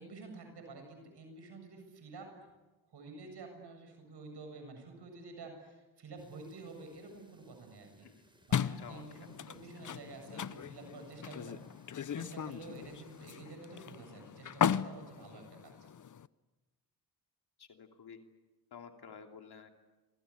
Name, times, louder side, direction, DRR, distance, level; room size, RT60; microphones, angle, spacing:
voice 1, 0.0-2.3 2.9-8.1 8.5-11.9 12.1-15.9, right 3 dB, 70° right, 5 dB, 7.5 m, -50 dB
sound 1, 6.2-13.3, right 1 dB, 10° right, 6.3 m, -66 dB
sound 2, 8.5-16.3, left 8 dB, 45° left, 0.8 m, -37 dB
voice 2, 8.8-9.3 17.6-18.2 18.7-19.7, left 6 dB, 65° left, 4 dB, 3.1 m, -51 dB
27.5 x 24.5 x 8.6 m, 1.2 s
cardioid pair, 70°, 41 cm